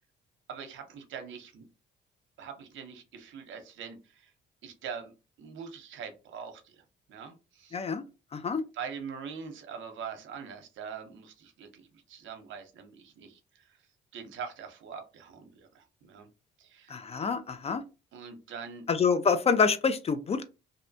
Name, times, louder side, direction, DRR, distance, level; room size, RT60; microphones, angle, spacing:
voice 1, 0.5-1.6 2.4-4.3 4.6-5.1 5.4-6.8 7.1-7.8 8.7-13.8 14.1-16.3 16.6-17.0 18.1-18.8, right 6 dB, 75° right, 0.7 m, -43 dB
voice 2, 7.7-8.0 8.3-8.6 16.9-17.8 18.9-20.5, left 5 dB, 30° left, 0.4 m, -26 dB
2.6 x 2.1 x 2.6 m
cardioid pair, 90°, 20 cm